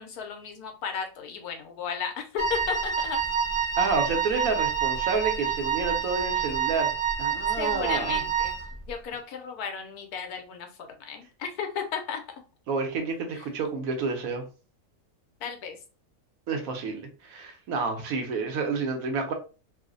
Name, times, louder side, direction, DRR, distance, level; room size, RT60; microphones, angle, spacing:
voice 1, 0.0-3.2 7.6-8.5 8.9-12.2 13.3-13.4 15.4-15.8, left 6 dB, 90° left, 4 dB, 1.2 m, -34 dB
Wind instrument woodwind instrument, 2.4-8.7, right 7 dB, 30° right, 0.6 m, -28 dB
voice 2, 3.8-6.9 7.2-8.2 12.7-14.4 16.5-19.3, right 4 dB, 70° right, 4 dB, 1.1 m, -29 dB
3.1 x 2.1 x 3.7 m, 0.34 s
omnidirectional pair, 1.6 m